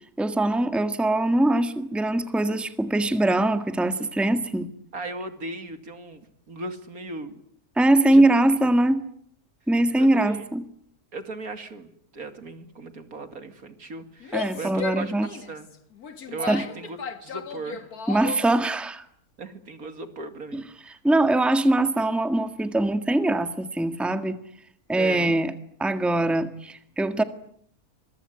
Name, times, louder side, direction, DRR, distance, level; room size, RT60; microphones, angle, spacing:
voice 1, 0.2-4.7 7.8-9.0 9.7-10.6 14.3-15.3 16.5-16.6 18.1-19.0 20.5-20.6 21.0-24.4 24.9-25.5 25.8-27.2, right 1 dB, ahead, 10 dB, 1.6 m, -22 dB
voice 2, 4.9-7.4 8.1-8.3 10.0-10.5 11.1-15.7 16.3-17.9 19.4-21.0 25.0-25.5, right 3 dB, 75° right, 9 dB, 3.0 m, -37 dB
Female speech woman speaking / Yell, 14.2-18.6, left 6 dB, 80° left, 2.3 m, -35 dB
25.5 x 23.5 x 9.7 m, 0.65 s
omnidirectional pair, 1.5 m